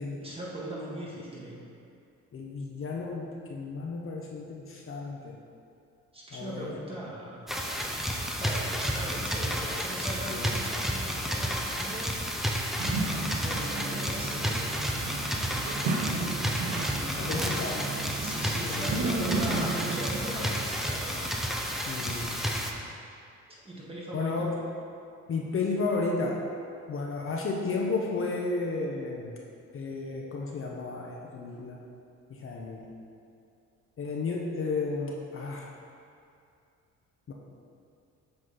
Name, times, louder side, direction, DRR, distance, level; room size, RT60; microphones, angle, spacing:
voice 1, 0.2-1.6 6.1-7.4 8.4-12.1 13.4-14.8 16.9-17.8 18.2-21.2 23.5-24.5, right 1 dB, 20° right, -5 dB, 1.6 m, -39 dB
voice 2, 2.3-5.4 6.3-6.8 10.3-10.5 17.2-17.8 18.8-19.0 21.8-22.4 24.1-24.6 25.3-26.4 26.9-29.3 29.7-31.8 32.3-32.9 34.0-35.7 37.3-37.4, left 3 dB, 45° left, -1 dB, 0.8 m, -33 dB
sound 1, 7.5-22.7, equal, ahead, 0.6 m, -31 dB
sound 2, 12.8-20.5, right 3 dB, 75° right, 0.9 m, -33 dB
7.8 x 4.1 x 3.9 m, 2.5 s
cardioid pair, 90°, 30 cm